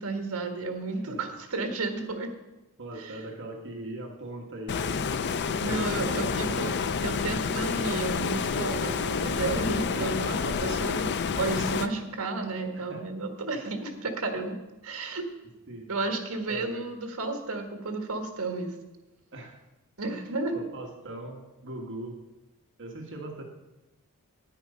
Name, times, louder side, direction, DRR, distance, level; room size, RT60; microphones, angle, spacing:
voice 1, 0.0-2.3 3.0-3.2 5.6-6.7 7.0-11.1 11.4-14.6 14.8-15.3 15.9-18.7 20.0-20.5, right 3 dB, 70° right, 5 dB, 1.6 m, -32 dB
voice 2, 0.9-1.2 2.8-5.0 5.7-6.8 9.9-10.1 12.7-13.1 15.7-15.9 16.5-16.8 19.3-19.6 20.5-22.2 22.8-23.4, right 1 dB, 55° right, 2 dB, 1.5 m, -40 dB
Stream, 4.7-11.9, left 5 dB, 50° left, 0.5 m, -29 dB
9.6 x 9.0 x 5.5 m, 1.0 s
head